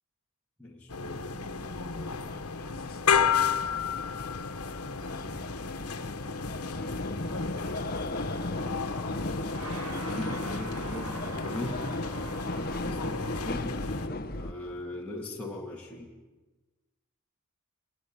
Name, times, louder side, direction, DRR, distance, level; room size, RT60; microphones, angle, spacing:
voice 1, 0.6-2.4 5.1-5.5 10.0-11.9 12.5-13.8 14.0-16.1, left 1 dB, 5° left, -5 dB, 2.6 m, -41 dB
sound 1, 0.9-14.1, left 6 dB, 80° left, 1.5 m, -33 dB
sound 2, 1.3-14.5, left 2 dB, 40° left, 1.1 m, -37 dB
sound 3, 7.5-13.5, right 1 dB, 90° right, 7.2 m, -43 dB
26.0 x 22.0 x 9.7 m, 1.2 s
head